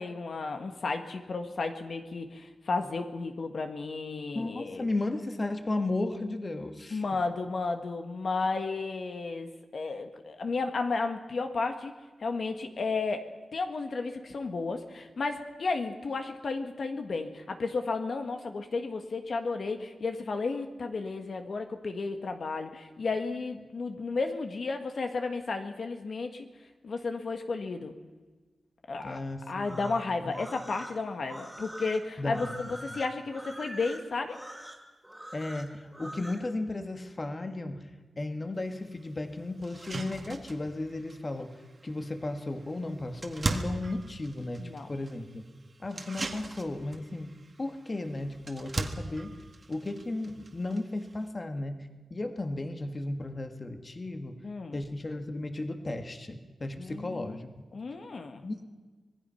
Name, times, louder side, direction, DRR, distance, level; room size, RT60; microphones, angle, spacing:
voice 1, 0.0-4.9 6.9-11.9 12.2-26.5 26.8-27.9 28.9-29.2 29.5-34.4 44.6-44.9 54.4-54.8 56.8-57.4 57.7-58.4, left 3 dB, 55° left, 6 dB, 1.5 m, -33 dB
voice 2, 4.3-7.0 29.0-29.9 30.2-30.4 32.2-33.0 35.3-37.9 38.2-41.6 41.8-45.4 45.8-47.3 47.6-49.3 49.7-54.4 54.7-57.5 58.4-58.7, left 2 dB, 30° left, 6 dB, 1.6 m, -35 dB
sound 1, 29.5-36.5, right 1 dB, 5° right, 2.8 m, -44 dB
sound 2, 38.6-38.7 39.2-39.3 39.6-51.3, right 3 dB, 40° right, 1.8 m, -40 dB
25.5 x 20.0 x 5.7 m, 1.3 s
wide cardioid pair, 130°, 0 cm